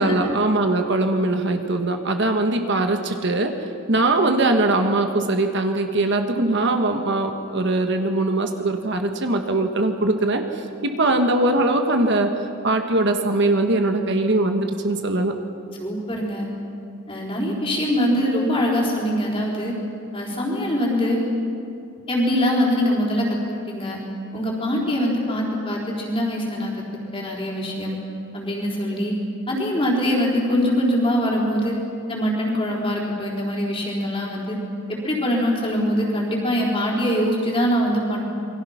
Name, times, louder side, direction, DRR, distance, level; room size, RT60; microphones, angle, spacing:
voice 1, 0.0-3.5 3.9-12.3 12.6-15.3, right 2 dB, 50° right, 5 dB, 1.4 m, -21 dB
voice 2, 15.8-16.5 17.1-19.8 20.1-21.2 22.1-24.0 24.3-26.8 27.1-28.0 28.3-29.1 29.5-31.8 32.1-34.6 34.9-38.2, equal, 25° left, -2 dB, 4.3 m, -23 dB
28.0 x 23.0 x 5.9 m, 2.6 s
head